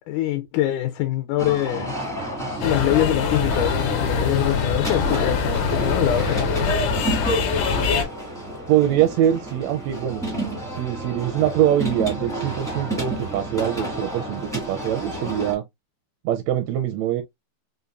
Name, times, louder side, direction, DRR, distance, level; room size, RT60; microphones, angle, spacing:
voice 1, 0.1-1.9 2.6-6.5, left 13 dB, 85° left, 2.0 m, -24 dB
sound 1, 1.4-15.5, right 1 dB, 5° left, 0.5 m, -31 dB
sound 2, 2.6-8.1, left 4 dB, 70° left, 1.9 m, -23 dB
voice 2, 8.7-10.5 10.8-15.6 16.2-17.2, right 11 dB, 80° right, 1.5 m, -23 dB
5.2 x 2.5 x 2.3 m
omnidirectional pair, 3.5 m